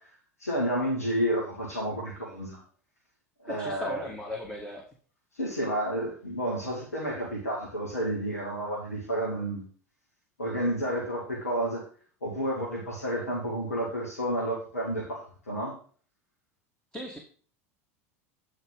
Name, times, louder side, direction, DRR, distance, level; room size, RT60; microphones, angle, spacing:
voice 1, 0.4-2.6 3.4-4.1 5.3-9.6 10.4-11.8 12.2-15.1 15.5-15.8, right 1 dB, 75° left, -3 dB, 2.3 m, -30 dB
voice 2, 3.4-4.9 16.9-17.2, equal, 10° left, 0 dB, 1.9 m, -37 dB
9.6 x 4.9 x 5.2 m, 0.43 s
figure-of-eight pair, 75°, 8 cm